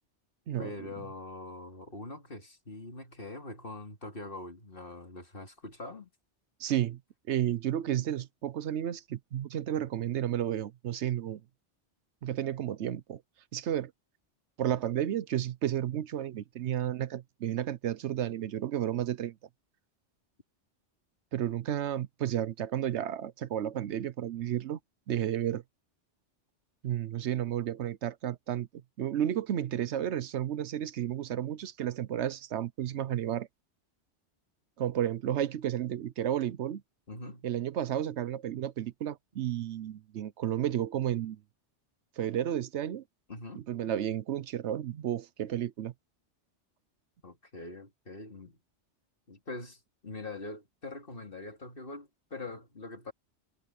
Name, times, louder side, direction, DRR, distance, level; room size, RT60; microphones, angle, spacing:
voice 1, 0.6-6.1 37.1-37.5 43.3-43.6 47.2-48.6 49.3-53.1, left 2 dB, 50° left, 3.1 m, -43 dB
voice 2, 6.6-7.0 7.3-11.4 12.2-13.2 13.5-13.9 14.6-19.4 21.3-24.8 25.1-25.6 26.8-28.7 29.0-33.5 34.8-36.8 37.4-41.4 42.2-43.0 43.5-45.9, right 11 dB, 75° right, 1.0 m, -32 dB
omnidirectional pair, 1.2 m